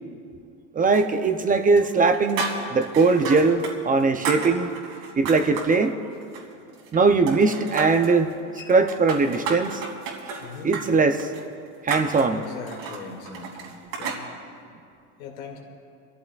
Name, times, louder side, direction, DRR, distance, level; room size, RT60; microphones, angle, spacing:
voice 1, 0.7-4.7 5.2-5.9 6.9-8.3 8.7-9.8 10.6-11.3 11.8-12.4, right 4 dB, 20° right, 8 dB, 0.5 m, -20 dB
sound 1, 0.9-1.5 1.8-3.7 4.0-5.8 6.2-7.0 7.3-8.1 8.7-14.2, right 4 dB, 70° right, 2.8 m, -32 dB
voice 2, 5.8-6.1 8.6-8.7 10.4-10.8 12.3-14.3 15.2-15.6, left 5 dB, 90° left, 1 dB, 2.3 m, -40 dB
27.5 x 14.0 x 2.4 m, 2.4 s
supercardioid pair, 120°, 40 cm